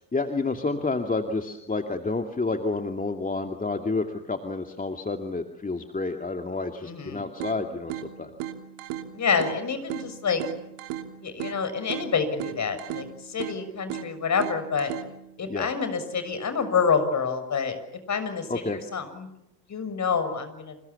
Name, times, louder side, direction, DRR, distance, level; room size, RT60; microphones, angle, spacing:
voice 1, 0.1-8.3 15.5-15.7 18.5-18.8, left 3 dB, 15° left, 5 dB, 2.4 m, -29 dB
voice 2, 6.8-7.2 9.1-10.4 11.2-14.9 15.4-17.8 18.1-19.3 19.7-20.7, left 6 dB, 35° left, 10 dB, 6.7 m, -27 dB
sound 1, 7.4-15.4, right 11 dB, 60° right, 3.0 m, -37 dB
29.0 x 28.0 x 7.2 m, 0.87 s
figure-of-eight pair, 60°, 48 cm